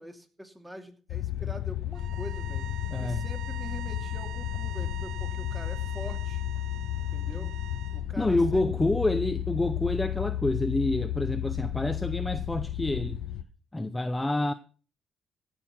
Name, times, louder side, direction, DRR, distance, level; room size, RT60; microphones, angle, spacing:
voice 1, 0.0-2.7 3.0-6.4 7.1-7.5 7.9-8.6, right 1 dB, 10° right, 2.7 m, -44 dB
sound 1, 1.1-13.4, left 12 dB, 90° left, 0.7 m, -33 dB
sound 2, 1.9-8.0, right 13 dB, 80° right, 0.7 m, -44 dB
voice 2, 2.9-3.3 7.4-7.5 8.2-13.2 13.7-14.5, left 2 dB, 15° left, 0.7 m, -28 dB
16.5 x 6.5 x 5.9 m
cardioid pair, 90°, 0 cm